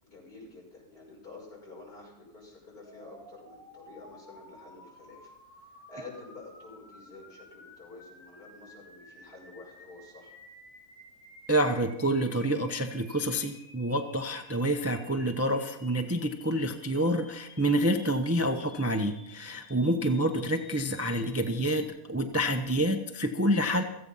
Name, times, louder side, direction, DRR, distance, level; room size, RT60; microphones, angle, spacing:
voice 1, 0.0-10.3 20.1-20.3, left 3 dB, 70° left, -2 dB, 6.4 m, -49 dB
sound 1, 2.8-21.9, left 1 dB, 40° left, 7.0 m, -54 dB
voice 2, 11.5-23.8, right 1 dB, 15° right, 6 dB, 0.7 m, -28 dB
16.5 x 15.0 x 5.6 m, 0.90 s
omnidirectional pair, 1.7 m